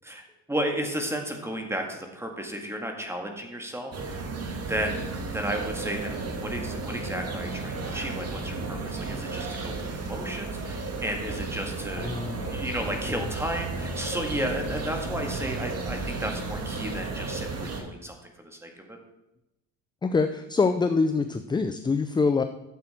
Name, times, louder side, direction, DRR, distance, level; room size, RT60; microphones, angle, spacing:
voice 1, 0.0-4.3 4.7-12.1 12.5-19.0, right 1 dB, 5° right, 3 dB, 2.0 m, -33 dB
sound 1, 3.9-17.8, right 3 dB, 40° right, 1.8 m, -33 dB
voice 2, 12.0-13.2 15.3-15.4 20.0-22.4, left 4 dB, 10° left, 9 dB, 0.4 m, -26 dB
12.5 x 7.5 x 4.4 m, 0.92 s
cardioid pair, 105°, 38 cm